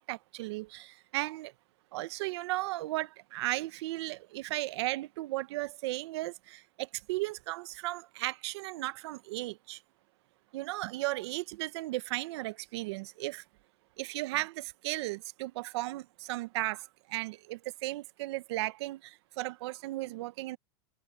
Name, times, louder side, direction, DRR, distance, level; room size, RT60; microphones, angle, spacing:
voice 1, 0.0-1.5 1.9-9.8 10.5-13.4 14.0-20.6, right 19 dB, 60° right, 1.1 m, -35 dB
supercardioid pair, 140°, 15 cm